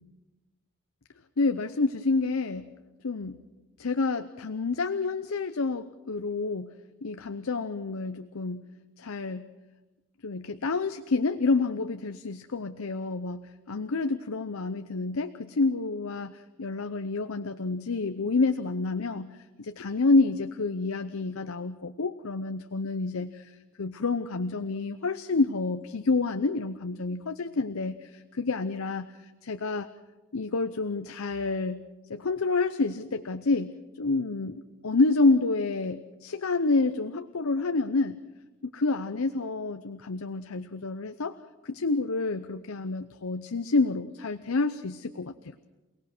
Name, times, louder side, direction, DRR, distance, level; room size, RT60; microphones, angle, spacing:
voice 1, 1.4-2.7 3.0-3.4 3.8-6.7 7.0-8.7 9.0-9.5 10.2-19.3 19.6-29.9 30.3-31.8 32.1-38.2 38.6-41.4 41.6-45.5, left 3 dB, 85° left, 10 dB, 0.7 m, -28 dB
28.5 x 18.0 x 6.1 m, 1.1 s
head